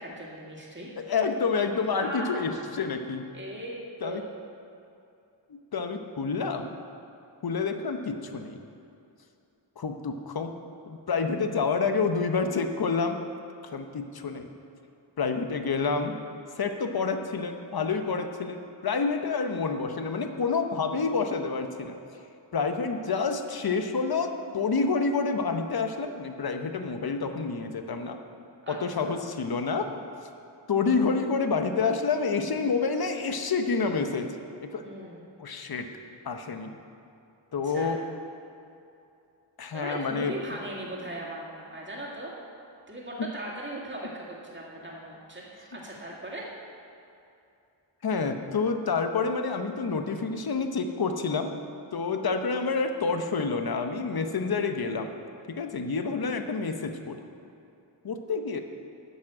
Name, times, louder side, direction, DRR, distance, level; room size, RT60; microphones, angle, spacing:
voice 1, 0.0-0.9 2.0-2.4 3.3-4.3 28.6-29.2 34.8-35.3 37.6-37.9 39.7-42.3 42.9-46.5, right 1 dB, 25° right, -4 dB, 2.1 m, -38 dB
voice 2, 1.0-3.2 4.0-4.2 5.7-6.7 7.4-8.6 9.8-10.6 10.9-13.2 13.7-14.5 15.2-16.1 16.6-21.9 22.5-28.2 28.7-29.9 30.7-34.3 34.6-34.8 35.4-35.9 36.2-36.8 37.5-38.0 39.6-40.3 48.0-51.5 51.9-55.1 55.5-57.2 58.0-58.6, left 4 dB, 50° left, 6 dB, 0.8 m, -28 dB
9.5 x 6.1 x 7.6 m, 2.7 s
wide cardioid pair, 95°, 47 cm